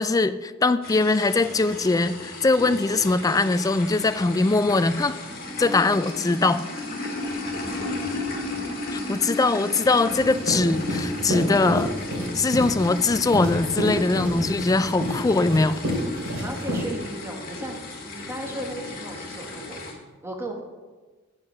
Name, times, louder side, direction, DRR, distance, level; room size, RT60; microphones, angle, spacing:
voice 1, 0.0-5.2 5.6-6.6 8.9-11.9 12.3-15.8, left 3 dB, 15° left, 12 dB, 0.3 m, -22 dB
sound 1, 0.8-19.9, left 2 dB, 45° left, 2.0 m, -34 dB
sound 2, 10.1-16.8, equal, 75° right, 3.6 m, -29 dB
voice 2, 16.4-19.8 20.2-20.6, right 1 dB, 10° right, 1 dB, 1.3 m, -35 dB
8.2 x 7.6 x 5.9 m, 1.3 s
head